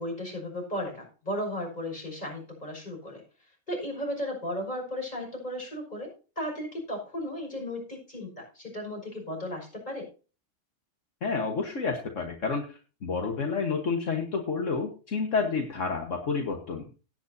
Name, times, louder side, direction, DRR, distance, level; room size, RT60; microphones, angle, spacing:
voice 1, 0.0-3.2 3.7-10.1, equal, 35° left, -1 dB, 6.1 m, -35 dB
voice 2, 11.2-16.9, left 4 dB, 75° left, 3 dB, 1.8 m, -30 dB
17.5 x 9.3 x 2.8 m, 0.35 s
omnidirectional pair, 1.3 m